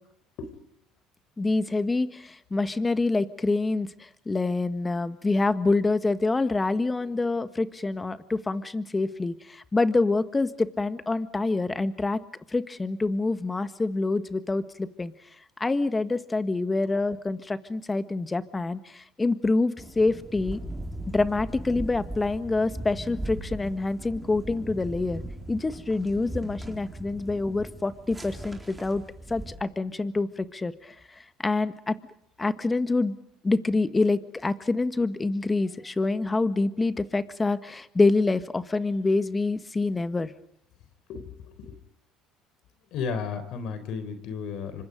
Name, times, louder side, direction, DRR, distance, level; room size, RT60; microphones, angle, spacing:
voice 1, 1.4-12.2 12.5-15.1 15.6-20.6 21.1-25.2 25.5-29.0 29.3-30.9 31.4-31.9 32.4-33.1 33.4-40.3, left 3 dB, 20° left, 11 dB, 1.6 m, -26 dB
sound 1, 19.8-29.6, right 1 dB, 5° right, 4.4 m, -39 dB
voice 2, 41.1-41.8 42.9-44.8, left 5 dB, 65° left, 11 dB, 4.0 m, -34 dB
28.5 x 25.0 x 5.3 m, 0.72 s
supercardioid pair, 85°, 0 cm